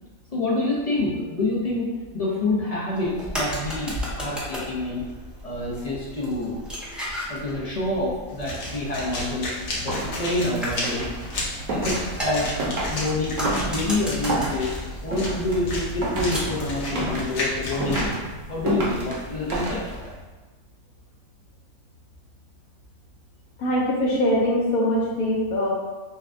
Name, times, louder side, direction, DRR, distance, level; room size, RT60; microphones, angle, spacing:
voice 1, 0.3-5.1 5.4-6.6 7.0-9.5 9.8-11.1 11.7-12.5 12.9-20.1, left 2 dB, 50° left, -4 dB, 0.4 m, -27 dB
sound 1, 2.9-16.7, left 1 dB, ahead, 0.7 m, -35 dB
sound 2, 8.3-18.1, left 1 dB, 70° left, 1.3 m, -33 dB
sound 3, 9.7-20.2, right 1 dB, 65° right, 1.2 m, -31 dB
voice 2, 23.6-25.7, equal, 90° left, -3 dB, 1.3 m, -22 dB
6.7 x 2.3 x 2.5 m, 1.3 s
omnidirectional pair, 1.5 m